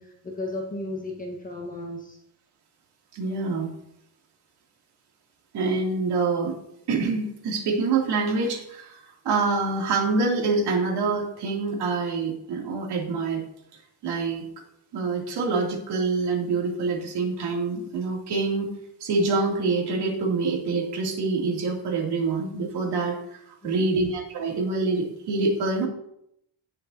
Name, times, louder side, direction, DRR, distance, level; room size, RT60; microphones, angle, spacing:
voice 1, 0.0-2.2 23.6-24.1, left 2 dB, 20° left, 0 dB, 1.4 m, -35 dB
voice 2, 3.1-3.7 5.5-6.5 6.9-13.4 14.0-14.4 14.9-18.7 19.0-25.9, right 3 dB, 65° right, -1 dB, 3.0 m, -26 dB
17.5 x 7.1 x 2.8 m, 0.76 s
cardioid pair, 160°, 42 cm